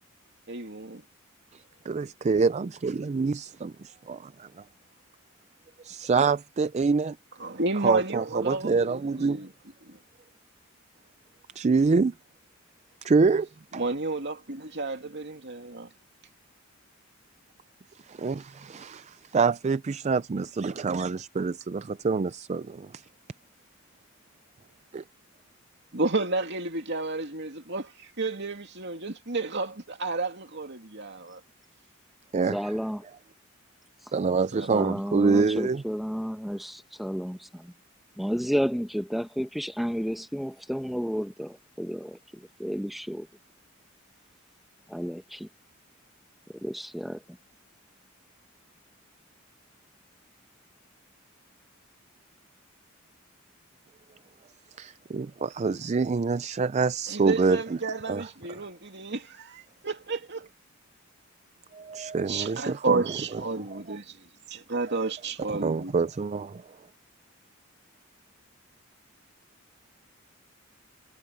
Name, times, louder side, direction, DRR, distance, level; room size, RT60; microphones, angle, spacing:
voice 1, 0.5-1.0 7.4-9.5 9.9-10.0 13.7-15.9 25.9-31.4 34.5-34.9 57.1-60.5 62.3-64.2 64.5-65.9, right 3 dB, 55° right, 2.7 m, -31 dB
voice 2, 1.5-4.5 5.8-7.2 7.8-9.4 11.6-12.1 13.0-13.5 13.7-13.8 18.1-23.0 24.9-25.0 32.3-32.6 34.1-35.8 54.8-57.6 58.1-58.5 61.7-63.4 63.7-64.0 65.2-66.6, right 4 dB, 35° right, 0.4 m, -26 dB
voice 3, 32.5-33.0 34.1-34.2 34.7-37.7 38.2-43.3 44.9-45.5 46.5-47.2, equal, ahead, 1.0 m, -32 dB
head